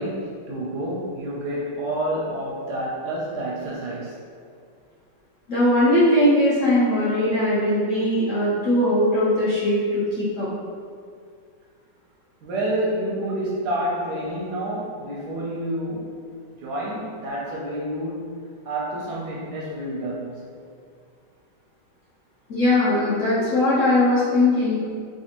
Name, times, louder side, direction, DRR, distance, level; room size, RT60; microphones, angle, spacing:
voice 1, 0.0-4.2 12.4-16.3 16.6-20.4, right 1 dB, 75° right, -4 dB, 1.0 m, -29 dB
voice 2, 5.5-10.5 22.5-24.8, left 1 dB, 55° left, -10 dB, 1.0 m, -20 dB
3.3 x 2.6 x 2.8 m, 2.1 s
omnidirectional pair, 2.0 m